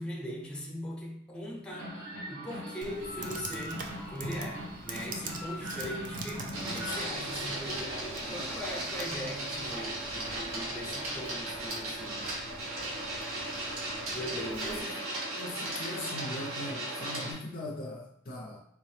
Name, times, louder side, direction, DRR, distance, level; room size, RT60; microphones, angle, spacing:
voice 1, 0.0-2.0 2.3-12.3 14.1-15.1, equal, 5° left, -2 dB, 0.8 m, -40 dB
sound 1, 1.7-7.0, equal, 65° right, 1.2 m, -41 dB
Computer keyboard, 2.8-14.8, right 3 dB, 40° right, 0.4 m, -45 dB
Printer, 6.5-17.3, right 1 dB, 85° right, 1.0 m, -36 dB
voice 2, 14.4-14.7 15.4-18.6, left 1 dB, 45° left, 0 dB, 0.5 m, -40 dB
3.5 x 2.9 x 3.2 m, 0.73 s
head